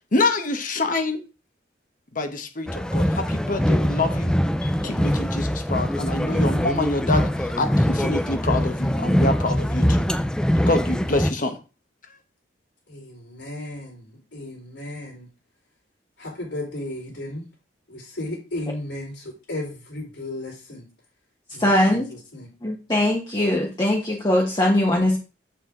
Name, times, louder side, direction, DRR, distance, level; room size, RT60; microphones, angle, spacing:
voice 1, 0.1-1.2 2.1-4.3 4.6-10.0 10.6-11.6, left 2 dB, 45° left, 1.1 m, -26 dB
sound 1, 2.7-11.3, equal, 5° left, 0.5 m, -23 dB
voice 2, 12.9-14.0 14.3-15.3 16.2-17.4 17.9-20.8 21.5-22.0 22.3-22.5, left 1 dB, 80° left, 4.4 m, -34 dB
voice 3, 21.6-22.1 22.6-25.2, left 1 dB, 25° left, 1.3 m, -21 dB
7.8 x 7.0 x 3.8 m
head